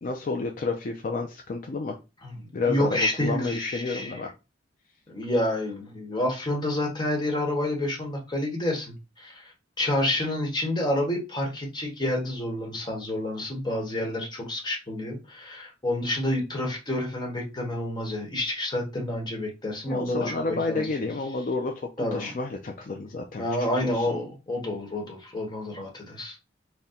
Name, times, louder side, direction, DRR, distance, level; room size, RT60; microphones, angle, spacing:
voice 1, 0.0-2.0 2.5-4.3 19.9-23.4 23.8-24.1, left 3 dB, 45° left, 3 dB, 0.4 m, -30 dB
voice 2, 2.6-4.2 5.1-9.5 9.8-21.1 22.0-22.3 23.4-26.4, left 1 dB, 20° left, 0 dB, 1.1 m, -29 dB
4.1 x 2.2 x 3.6 m, 0.28 s
head